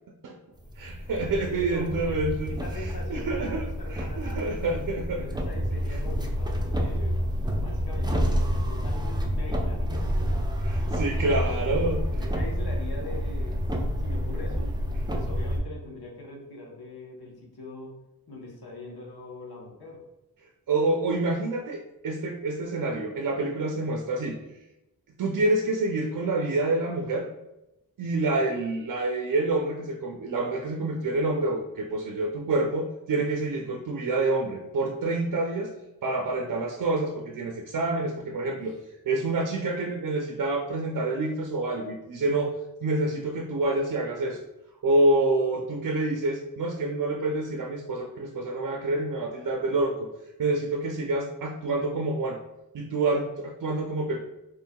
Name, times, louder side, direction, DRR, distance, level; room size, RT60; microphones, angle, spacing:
sound 1, 0.6-15.6, equal, 10° right, 0.5 m, -28 dB
voice 1, 0.8-5.3 5.9-6.0 10.6-12.0 20.7-24.4 25.2-27.3 28.0-35.7 36.0-38.7 39.1-42.5 42.8-44.4 44.8-50.1 50.4-52.4 52.7-54.2, right 2 dB, 60° right, 0 dB, 0.5 m, -27 dB
voice 2, 1.3-2.2 2.5-4.4 4.9-7.2 7.6-10.3 11.1-11.6 12.2-14.7 15.1-17.9 18.3-20.0 45.4-45.6, left 2 dB, 85° left, -2 dB, 1.0 m, -42 dB
4.5 x 3.1 x 2.2 m, 0.92 s
wide cardioid pair, 90°, 37 cm